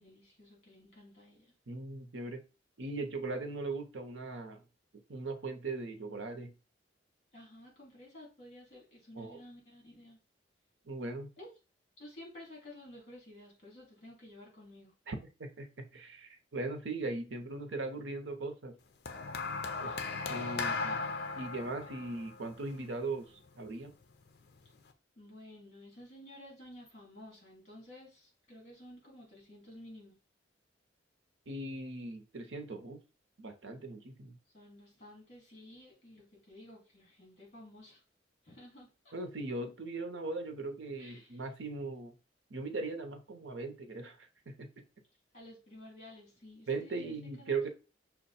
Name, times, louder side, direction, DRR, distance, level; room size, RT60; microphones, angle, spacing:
voice 1, 0.0-1.5 7.3-10.2 11.4-11.5 12.0-14.9 19.8-20.0 25.2-30.2 34.5-38.0 38.4-39.1 41.0-41.5 45.3-47.7, left 1 dB, 40° left, 2.8 m, -53 dB
voice 2, 1.7-2.4 2.8-4.6 5.1-6.5 9.2-9.4 10.9-11.3 15.1-18.8 19.8-20.0 20.3-21.1 21.3-23.9 31.5-33.0 33.4-34.4 39.1-42.1 42.5-44.7 46.7-47.7, right 3 dB, 85° right, 0.8 m, -39 dB
sound 1, 19.1-23.5 24.4-24.7, left 4 dB, 60° left, 0.6 m, -37 dB
5.7 x 2.2 x 4.2 m
head